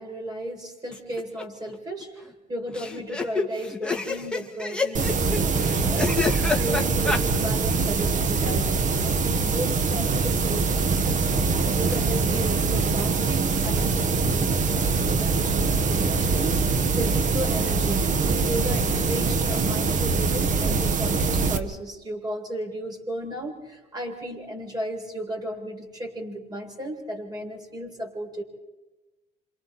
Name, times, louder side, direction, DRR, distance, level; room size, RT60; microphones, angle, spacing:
voice 1, 0.0-11.2 11.8-18.1 18.4-28.4, right 1 dB, 25° right, 0 dB, 7.7 m, -35 dB
sound 1, 0.9-1.4 1.7-1.8 2.0-2.1 2.7-7.2, left 3 dB, 5° left, 2.5 m, -28 dB
sound 2, 4.9-21.6, right 4 dB, 50° right, 1.8 m, -23 dB
29.0 x 27.5 x 4.5 m, 1.1 s
cardioid pair, 110°, 17 cm